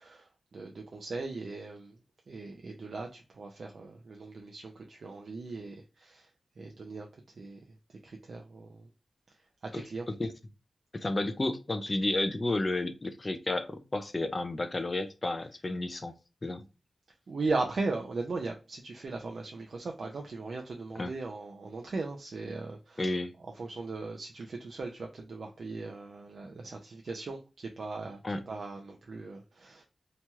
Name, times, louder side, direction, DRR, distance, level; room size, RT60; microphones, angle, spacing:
voice 1, 0.0-2.0 2.3-6.3 6.6-8.9 9.3-10.1 17.3-23.0 23.5-28.2 28.5-29.8, right 3 dB, 65° right, 0.4 m, -38 dB
voice 2, 9.7-10.3 10.9-16.1 16.4-16.6 21.0-21.1 23.0-23.3 28.2-28.4, left 2 dB, 30° left, 0.4 m, -32 dB
2.9 x 2.3 x 2.8 m
wide cardioid pair, 115°, 0 cm